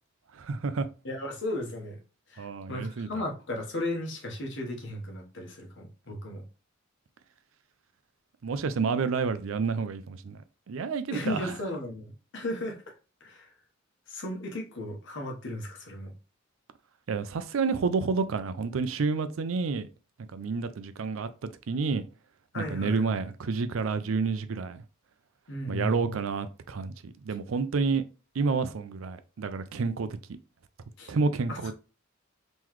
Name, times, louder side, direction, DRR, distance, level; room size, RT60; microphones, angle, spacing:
voice 1, 0.3-0.9 2.4-3.2 8.4-10.4 10.7-11.5 17.1-19.9 20.3-22.1 22.5-24.8 25.7-28.0 28.3-30.2 31.1-31.7, right 4 dB, 80° right, 0.4 m, -29 dB
voice 2, 1.0-2.0 2.3-6.4 11.1-13.5 14.1-16.1 22.5-23.1 25.5-26.2 31.0-31.1 31.5-31.7, left 1 dB, 65° left, 1.0 m, -35 dB
3.8 x 3.0 x 3.0 m
head